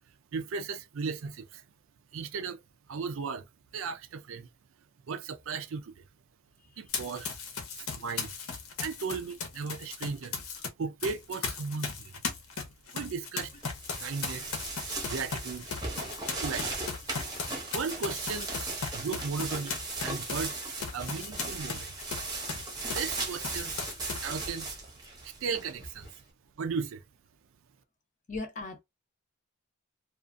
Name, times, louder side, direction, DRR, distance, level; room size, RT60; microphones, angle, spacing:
voice 1, 0.3-1.6 2.1-2.6 2.9-3.5 3.7-4.5 5.1-6.0 6.8-7.3 7.7-8.3 8.8-10.4 10.8-12.1 12.9-13.5 14.0-14.6 15.0-15.7 16.4-16.7 17.7-18.5 18.9-19.8 20.0-20.5 20.9-21.9 22.9-23.8 24.2-24.7 25.2-26.1 26.6-27.0, right 5 dB, 60° right, 0.4 m, -36 dB
Run, 6.9-10.7 11.0-23.2 23.4-24.4, left 5 dB, 75° left, 0.8 m, -37 dB
sound 1, 13.6-26.1, right 3 dB, 20° right, 0.7 m, -37 dB
voice 2, 28.3-28.8, left 3 dB, 35° left, 0.6 m, -37 dB
2.5 x 2.4 x 2.5 m
head